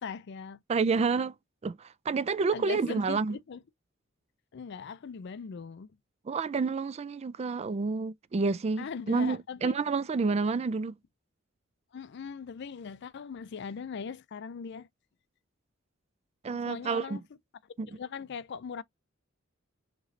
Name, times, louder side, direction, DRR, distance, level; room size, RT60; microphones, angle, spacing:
voice 1, 0.0-0.6 2.5-3.6 4.5-5.9 8.8-9.8 11.9-14.9 16.7-17.2 17.9-18.8, left 6 dB, 60° left, 0.4 m, -40 dB
voice 2, 0.7-1.3 1.6-3.4 6.3-11.0 16.4-17.2 17.8-17.9, right 4 dB, 30° right, 0.3 m, -29 dB
6.4 x 3.0 x 2.7 m
head